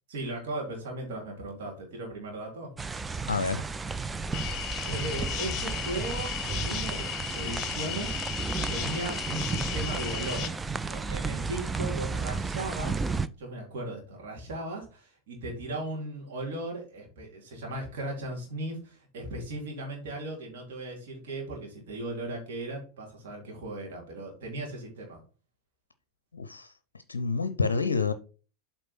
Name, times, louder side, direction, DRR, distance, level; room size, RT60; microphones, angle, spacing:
voice 1, 0.1-2.7 4.8-8.3 8.7-10.5 10.9-13.1 13.4-25.2, right 2 dB, 55° right, 3.0 m, -37 dB
sound 1, 2.8-13.3, right 4 dB, 10° right, 0.4 m, -33 dB
voice 2, 3.3-3.7 26.3-26.7 27.1-28.1, left 4 dB, 70° left, 0.6 m, -28 dB
sound 2, 4.3-10.5, left 12 dB, 35° left, 0.9 m, -36 dB
7.8 x 4.4 x 4.4 m
figure-of-eight pair, 90°, 0 cm